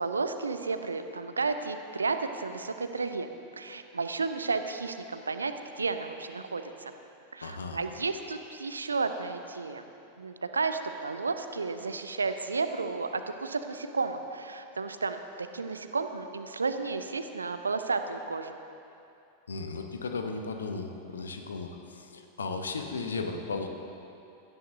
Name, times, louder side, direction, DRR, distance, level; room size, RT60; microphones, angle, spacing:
voice 1, 0.0-3.3 3.6-6.9 7.3-9.8 10.2-18.5, right 4 dB, 75° right, 8 dB, 0.6 m, -32 dB
voice 2, 7.4-7.8 19.5-23.7, left 4 dB, 70° left, 5 dB, 0.9 m, -35 dB
16.5 x 13.0 x 2.7 m, 2.7 s
figure-of-eight pair, 90°, 0 cm